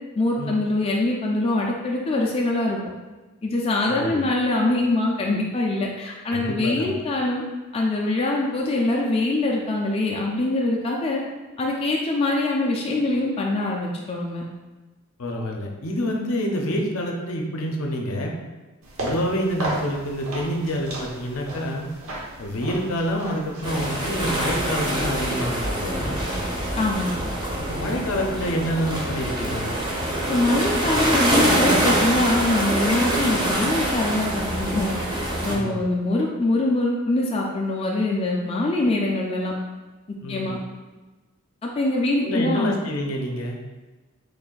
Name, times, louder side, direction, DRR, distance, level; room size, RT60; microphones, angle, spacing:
voice 1, 0.2-2.8 3.4-7.4 7.7-11.2 11.6-14.4 26.8-27.1 30.3-39.5 40.1-40.6 41.6-42.7, left 2 dB, 25° left, -1 dB, 0.3 m, -23 dB
voice 2, 3.8-4.2 6.3-6.9 15.2-18.3 19.0-21.9 22.4-26.2 27.6-29.7 35.5-35.8 40.2-40.5 42.2-43.6, equal, 70° left, 1 dB, 0.6 m, -27 dB
sound 1, 18.8-24.4, right 1 dB, 75° right, 0.9 m, -35 dB
sound 2, 23.6-35.6, right 1 dB, 20° right, 0.6 m, -25 dB
3.2 x 2.5 x 3.8 m, 1.2 s
head